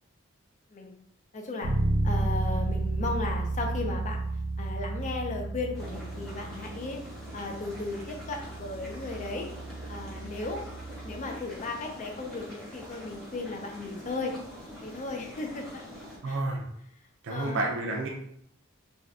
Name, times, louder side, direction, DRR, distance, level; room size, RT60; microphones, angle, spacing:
voice 1, 1.3-1.7 2.0-4.2 4.6-7.0 7.3-9.5 9.9-10.6 11.0-14.3 14.8-15.8 16.2-16.4 17.3-17.7, left 3 dB, 35° left, 2 dB, 0.5 m, -35 dB
Bass guitar, 1.6-11.4, right 2 dB, 85° right, 1.0 m, -32 dB
sound 1, 5.7-16.2, equal, ahead, 0.9 m, -45 dB
voice 2, 16.2-16.6 17.2-18.1, right 2 dB, 65° right, -1 dB, 0.5 m, -30 dB
2.6 x 2.3 x 3.4 m, 0.72 s
head